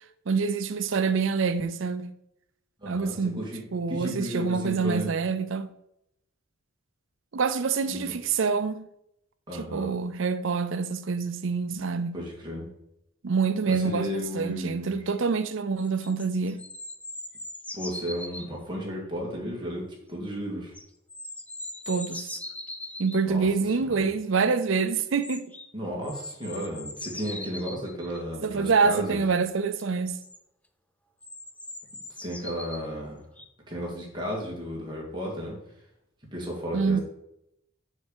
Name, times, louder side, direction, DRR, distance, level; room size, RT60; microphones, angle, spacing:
voice 1, 0.3-2.1 2.9-3.4 3.7-5.7 7.3-8.8 9.5-12.2 13.2-16.6 21.9-22.3 23.0-25.5 28.4-30.2 36.7-37.0, right 5 dB, 65° right, 0.5 m, -26 dB
voice 2, 2.8-5.1 7.9-8.1 9.5-9.9 12.1-12.7 13.7-15.0 17.7-20.7 23.3-24.1 25.7-29.2 32.2-33.2 33.7-35.6 36.3-37.0, equal, 20° right, 2.1 m, -34 dB
sound 1, 13.7-13.8 15.8-18.5 20.7-23.2 25.2-25.7 26.0-28.2 29.8-29.9 30.2-30.4 31.2-32.8 33.4-33.5, left 1 dB, 5° left, 0.4 m, -40 dB
6.4 x 5.5 x 4.9 m
head